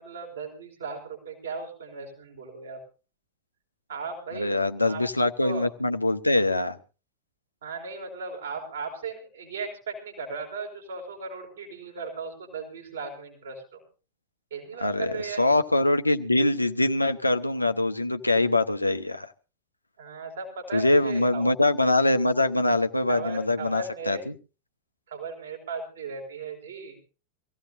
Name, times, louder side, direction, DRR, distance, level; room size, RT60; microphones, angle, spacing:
voice 1, 0.0-2.8 3.9-5.0 5.4-5.7 7.6-13.8 14.5-15.4 20.0-21.4 23.1-24.2 25.1-27.0, right 4 dB, 65° right, 2 dB, 5.0 m, -37 dB
voice 2, 4.3-6.8 14.8-19.3 20.7-24.3, left 2 dB, 85° left, 8 dB, 0.8 m, -23 dB
25.0 x 16.0 x 2.6 m, 0.34 s
figure-of-eight pair, 90°, 0 cm